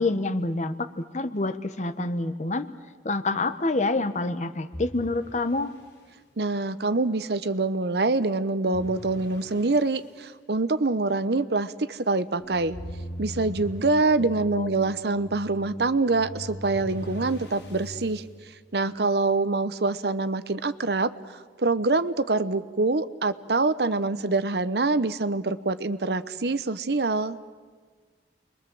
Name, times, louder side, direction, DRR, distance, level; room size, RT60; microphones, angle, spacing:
voice 1, 0.0-2.7 3.0-5.7 14.5-14.7, left 2 dB, 40° left, 11 dB, 1.0 m, -27 dB
sound 1, 4.7-6.1 8.7-10.2 12.7-14.1 16.7-18.3, left 1 dB, 90° left, 4.1 m, -45 dB
voice 2, 6.4-12.8 13.2-18.2 18.7-21.1 21.6-27.4, right 3 dB, 65° right, 14 dB, 0.9 m, -25 dB
sound 2, 12.4-18.1, equal, 20° left, 2.7 m, -40 dB
29.5 x 22.0 x 7.7 m, 1.5 s
head